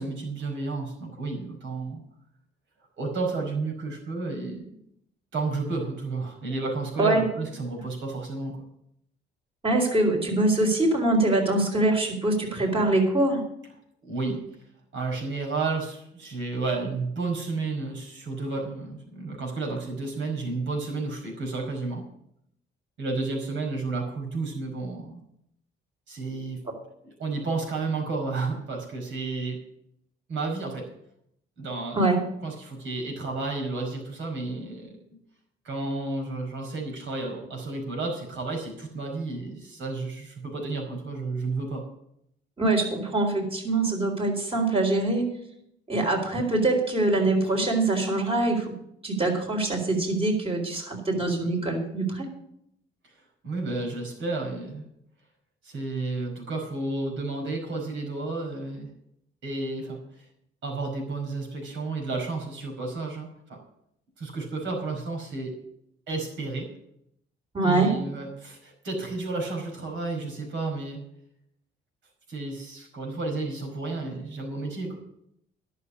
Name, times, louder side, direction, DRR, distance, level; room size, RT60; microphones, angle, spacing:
voice 1, 0.0-2.0 3.0-4.8 5.3-8.6 14.0-14.4 14.9-22.1 23.0-25.2 26.1-26.6 27.0-29.6 30.3-30.9 31.6-32.0 32.4-35.0 35.6-41.8 53.0-53.1 53.4-54.9 55.6-58.9 59.4-60.2 60.6-63.6 64.2-65.6 66.1-66.7 67.6-71.0 72.3-75.0, right 3 dB, 75° right, 2 dB, 5.1 m, -32 dB
voice 2, 9.6-13.4 31.9-32.2 42.6-45.3 45.9-48.7 49.0-52.3 67.5-67.9, right 2 dB, 30° right, 1 dB, 4.2 m, -24 dB
11.5 x 6.9 x 8.4 m, 0.75 s
cardioid pair, 90°, 20 cm